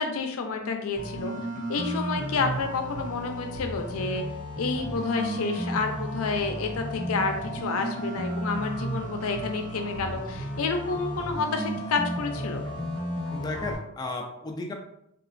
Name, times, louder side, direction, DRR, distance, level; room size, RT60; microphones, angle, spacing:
voice 1, 0.0-1.3 1.7-4.2 4.6-12.7, left 4 dB, 85° left, 5 dB, 0.4 m, -29 dB
sound 1, 1.0-13.8, equal, 80° right, 1.3 m, -34 dB
voice 2, 13.3-14.7, left 2 dB, 20° left, 1 dB, 0.3 m, -34 dB
2.9 x 2.4 x 2.5 m, 0.79 s
head